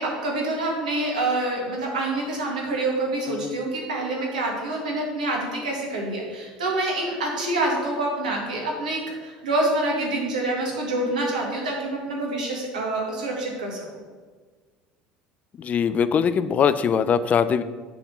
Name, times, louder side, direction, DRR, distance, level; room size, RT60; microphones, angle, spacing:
voice 1, 0.0-13.9, right 2 dB, 90° right, -1 dB, 1.6 m, -26 dB
voice 2, 3.3-3.7 15.6-17.6, left 7 dB, 40° left, 13 dB, 0.4 m, -22 dB
7.1 x 3.5 x 5.7 m, 1.5 s
hypercardioid pair, 75°, 4 cm